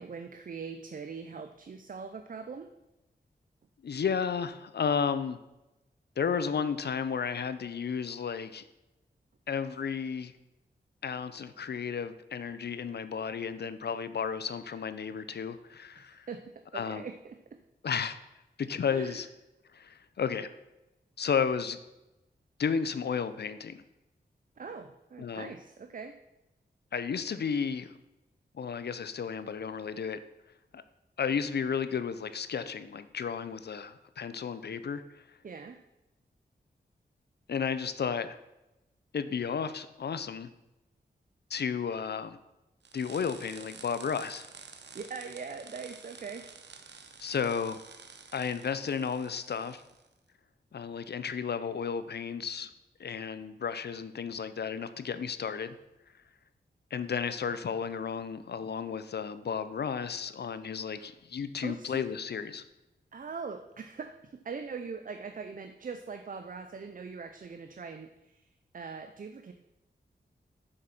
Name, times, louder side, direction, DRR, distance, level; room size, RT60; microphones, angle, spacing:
voice 1, 0.0-2.7 16.0-17.6 18.9-19.2 24.6-26.2 35.4-35.8 44.9-46.5 60.9-61.1 61.6-62.1 63.1-68.5 68.7-69.5, right 5 dB, 50° right, 8 dB, 0.6 m, -42 dB
voice 2, 3.8-5.4 6.2-8.6 9.5-10.3 11.0-16.3 16.7-17.0 17.8-18.2 18.6-19.3 19.7-20.5 21.2-21.8 22.6-23.8 25.2-25.5 26.9-27.9 28.5-30.2 30.7-30.8 31.2-35.2 37.5-38.4 39.1-40.5 41.5-42.4 42.9-44.4 47.2-47.8 48.3-49.8 50.7-52.7 53.0-55.7 56.9-62.6, left 6 dB, 65° left, 13 dB, 0.6 m, -33 dB
sound 1, 42.8-50.1, right 5 dB, 75° right, 1.0 m, -50 dB
7.6 x 6.6 x 6.0 m, 0.96 s
wide cardioid pair, 115°, 18 cm